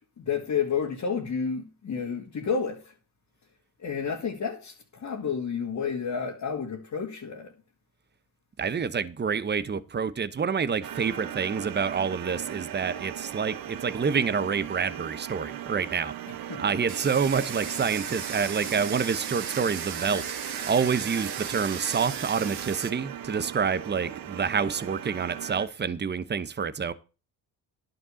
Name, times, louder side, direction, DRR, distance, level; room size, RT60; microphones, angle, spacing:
voice 1, 0.0-2.9 3.8-7.5 16.3-16.6, left 6 dB, 45° left, 2.3 m, -31 dB
voice 2, 8.6-26.9, right 6 dB, 25° right, 1.0 m, -28 dB
sound 1, 10.8-25.7, right 10 dB, 55° right, 1.0 m, -38 dB
Domestic sounds home sounds, 16.9-22.9, right 8 dB, 75° right, 2.1 m, -36 dB
11.0 x 5.2 x 7.0 m
supercardioid pair, 70°, 41 cm